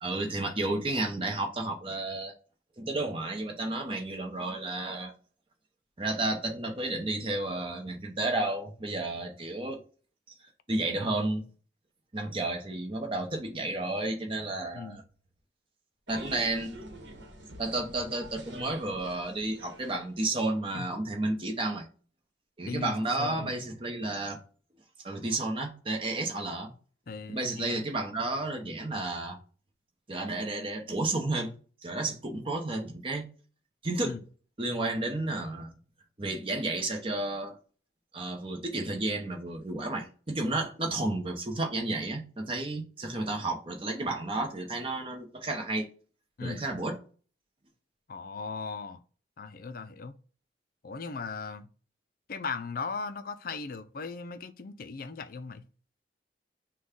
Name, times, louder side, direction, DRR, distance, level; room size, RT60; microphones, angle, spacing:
voice 1, 0.0-2.3 2.8-5.1 6.0-9.8 10.7-11.4 12.1-15.0 16.1-16.7 17.6-21.8 22.6-24.4 25.0-26.7 27.3-29.4 30.1-31.5 31.8-33.3 33.8-34.2 34.6-35.7 36.2-37.6 38.1-45.9 46.4-47.0, right 2 dB, 30° right, 0.9 m, -32 dB
sound 1, 16.1-20.5, right 2 dB, 70° right, 1.1 m, -46 dB
voice 2, 22.7-23.6 27.1-27.8 34.0-34.2 46.4-46.6 48.1-49.0 49.4-50.1 50.8-51.7 52.3-55.6, left 4 dB, 50° left, 0.4 m, -38 dB
6.1 x 2.3 x 3.6 m
head